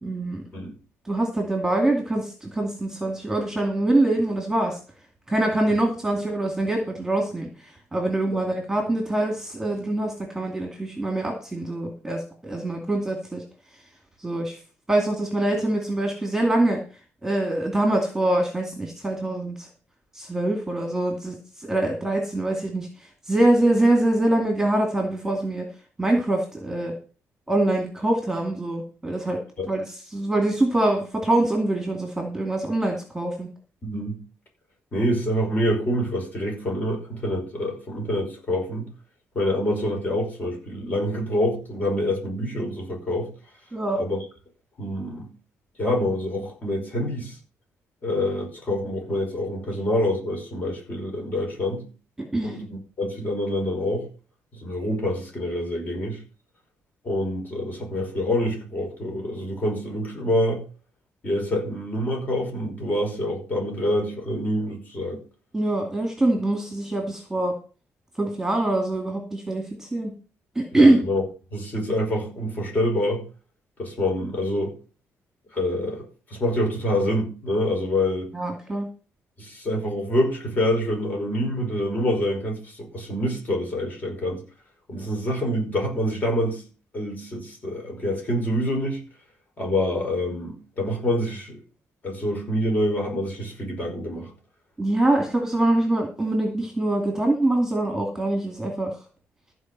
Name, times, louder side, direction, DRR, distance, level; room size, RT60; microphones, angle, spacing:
voice 1, 0.0-0.4 1.0-4.8 5.3-13.4 14.2-14.6 14.9-16.8 17.2-19.7 20.1-22.9 23.3-25.7 26.0-26.9 27.5-29.4 29.7-33.5 43.7-44.0 52.3-52.6 65.5-67.5 68.2-70.1 70.6-71.0 78.3-78.9 94.8-98.9, right 1 dB, 5° right, 2 dB, 2.4 m, -24 dB
voice 2, 33.8-34.2 34.9-38.9 39.4-43.3 44.0-44.2 44.8-45.3 45.8-47.3 48.0-51.8 52.4-54.1 54.6-56.2 57.0-60.6 61.2-65.2 70.7-71.2 71.5-73.2 73.8-74.7 75.5-78.3 79.4-84.4 84.9-86.6 86.9-89.0 89.6-91.6 92.0-94.3, left 1 dB, 30° left, 1 dB, 5.5 m, -26 dB
14.5 x 5.0 x 7.5 m, 0.35 s
cardioid pair, 165°, 6 cm